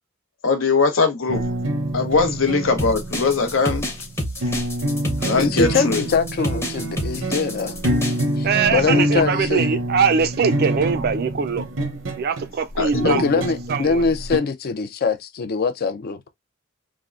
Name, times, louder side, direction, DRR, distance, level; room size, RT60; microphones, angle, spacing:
voice 1, 0.4-1.4 1.9-3.9 5.2-6.0 12.8-13.2, left 4 dB, 80° left, 0.7 m, -20 dB
sound 1, 1.3-14.4, right 1 dB, 80° right, 0.7 m, -26 dB
sound 2, 2.8-8.2, equal, 15° left, 0.7 m, -28 dB
voice 2, 5.3-7.8 8.4-9.6 13.0-16.2, left 4 dB, 50° left, 0.4 m, -23 dB
voice 3, 8.4-11.7 12.2-13.2 13.7-14.0, right 6 dB, 50° right, 0.4 m, -22 dB
3.5 x 2.1 x 2.4 m
head